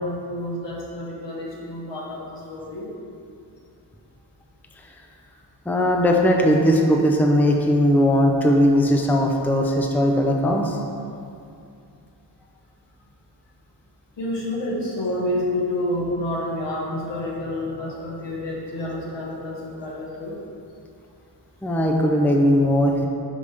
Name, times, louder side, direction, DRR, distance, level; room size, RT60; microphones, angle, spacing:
voice 1, 0.0-2.9 14.2-20.4, left 1 dB, 85° left, -4 dB, 1.4 m, -29 dB
voice 2, 5.7-10.8 21.6-23.1, equal, 5° left, 1 dB, 0.4 m, -19 dB
6.5 x 5.4 x 3.3 m, 2.5 s
wide cardioid pair, 130°, 42 cm